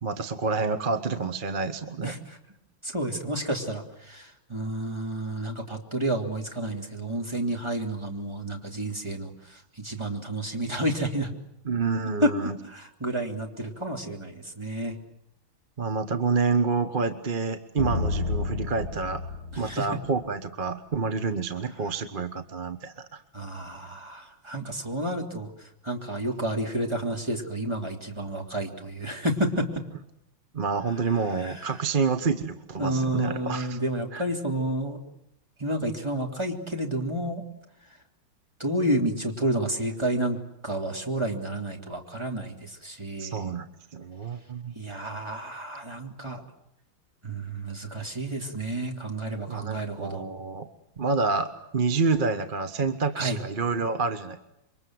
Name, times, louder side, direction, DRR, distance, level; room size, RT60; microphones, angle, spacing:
voice 1, 0.0-2.1 11.6-12.6 15.8-19.3 19.6-23.2 30.5-33.8 34.1-34.2 43.2-44.7 49.5-50.7 51.0-54.4, right 4 dB, 30° right, 9 dB, 1.0 m, -28 dB
voice 2, 2.0-2.4 2.8-11.3 12.2-12.3 12.6-15.0 19.5-19.9 23.3-29.8 31.4-31.8 32.8-35.0 35.6-37.4 38.6-40.4 40.6-43.5 44.7-46.4 47.2-50.2 53.2-53.4, right 1 dB, 15° right, 2 dB, 3.2 m, -30 dB
sound 1, 17.8-20.5, left 3 dB, 90° right, 2.8 m, -31 dB
27.5 x 24.0 x 7.8 m, 0.80 s
omnidirectional pair, 2.2 m